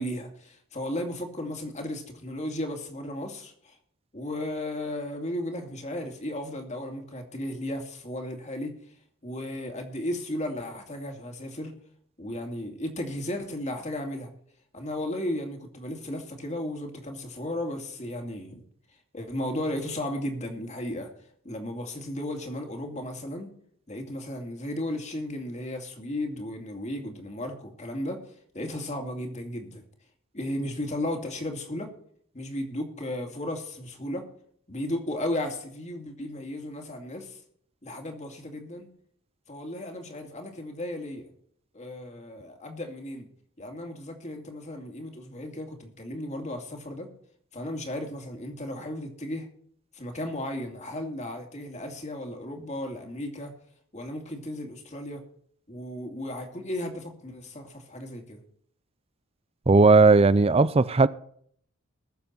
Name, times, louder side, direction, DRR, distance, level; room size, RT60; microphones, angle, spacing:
voice 1, 0.0-3.8 4.1-8.7 9.2-11.7 12.2-14.3 14.7-18.6 19.1-21.1 21.4-23.5 23.9-29.8 30.3-31.9 32.3-34.3 34.7-37.4 37.8-38.9 39.5-41.3 41.7-43.3 43.6-47.1 47.5-49.5 49.9-53.5 53.9-55.2 55.7-58.4, left 1 dB, 35° left, 2.3 m, -35 dB
voice 2, 59.7-61.1, right 3 dB, 30° right, 0.5 m, -17 dB
21.0 x 7.0 x 4.3 m
head